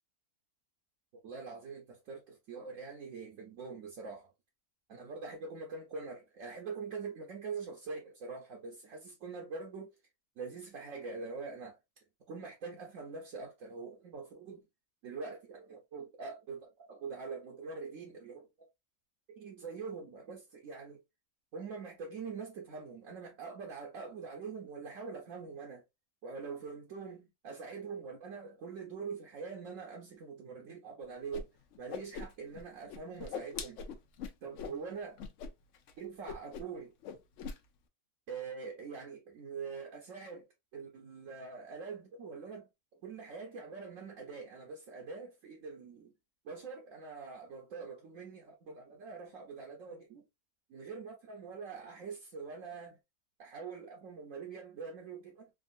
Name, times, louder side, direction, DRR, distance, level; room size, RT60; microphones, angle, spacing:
voice 1, 1.2-4.3 4.9-9.9 10.4-11.8 12.3-14.6 15.0-18.5 19.4-21.0 21.5-25.8 26.2-31.5 31.8-33.8 34.4-35.2 36.0-36.9 38.3-40.5 40.7-42.7 43.0-46.1 46.4-50.2 50.7-53.0 53.4-55.5, right 5 dB, 65° right, 1.0 m, -44 dB
Whoosh swoosh swish, 31.3-31.4 31.7-32.6 32.9-34.8 35.2-35.5 35.7-35.9 36.3-36.8 37.0-37.6, left 5 dB, 70° left, 0.8 m, -41 dB
3.6 x 2.3 x 2.4 m
omnidirectional pair, 1.6 m